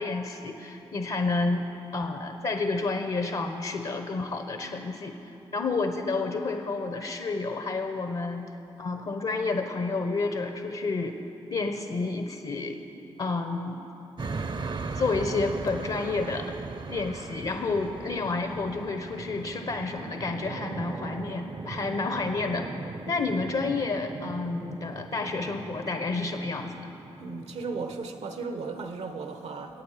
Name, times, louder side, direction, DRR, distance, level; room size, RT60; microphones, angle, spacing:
voice 1, 0.0-1.7 1.9-5.1 5.5-8.5 8.8-11.2 11.5-12.8 13.2-13.9 14.9-16.6 16.9-22.8 23.1-26.9, left 3 dB, 65° left, 5 dB, 1.0 m, -30 dB
sound 1, 14.2-28.4, right 4 dB, 45° right, 0.7 m, -39 dB
voice 2, 27.2-29.8, right 4 dB, 80° right, 7 dB, 1.0 m, -36 dB
22.0 x 8.6 x 5.1 m, 2.9 s
supercardioid pair, 50°, 11 cm